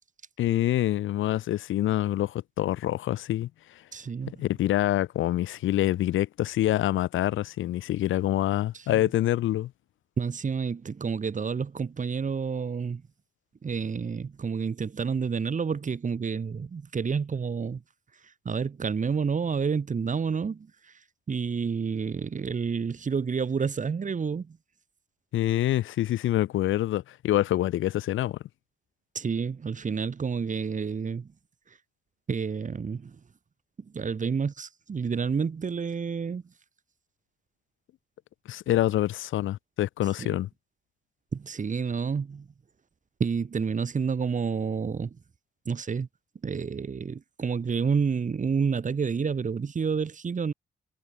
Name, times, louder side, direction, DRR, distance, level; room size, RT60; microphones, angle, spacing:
voice 1, 0.4-3.5 4.4-9.7 25.3-28.4 38.5-40.5, left 14 dB, 85° left, 1.2 m, -26 dB
voice 2, 3.9-4.4 8.7-9.0 10.2-13.0 13.6-17.8 18.4-20.9 21.3-24.6 29.1-31.3 32.3-33.2 33.8-36.4 40.2-40.4 41.3-42.5 43.2-45.2 45.6-46.1 46.4-50.5, right 5 dB, 40° right, 1.2 m, -29 dB
cardioid pair, 60°, 20 cm